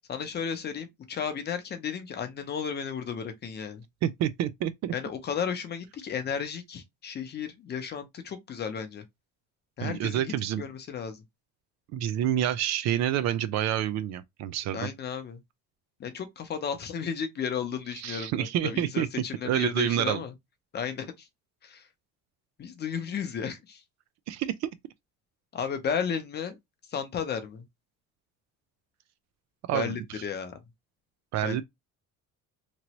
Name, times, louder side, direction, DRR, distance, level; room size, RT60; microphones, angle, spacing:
voice 1, 0.1-3.8 4.9-9.0 9.8-11.2 14.7-15.4 16.0-20.3 20.7-21.3 21.6-21.9 22.6-23.8 25.5-26.6 26.9-27.6 29.7-30.5 31.4-31.6, left 7 dB, 35° left, 0.6 m, -34 dB
voice 2, 4.0-4.9 9.8-10.6 11.9-14.9 18.0-19.1 19.4-20.2 24.3-24.7 29.7-29.9 31.3-31.6, right 11 dB, 60° right, 0.4 m, -28 dB
3.0 x 2.6 x 2.9 m
cardioid pair, 155°, 30 cm